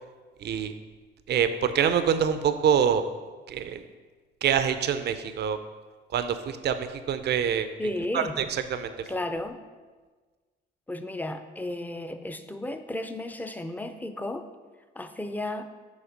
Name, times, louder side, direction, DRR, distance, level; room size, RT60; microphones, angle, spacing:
voice 1, 0.4-0.7 1.3-3.1 3.5-3.8 4.4-5.6 6.1-7.7 8.1-8.5 8.7-8.9, right 8 dB, 60° right, 10 dB, 0.5 m, -25 dB
voice 2, 7.8-8.3 9.1-9.6 10.9-14.4 15.0-15.6, left 1 dB, 10° left, 8 dB, 0.5 m, -33 dB
7.1 x 4.2 x 5.1 m, 1.4 s
cardioid pair, 90°, 20 cm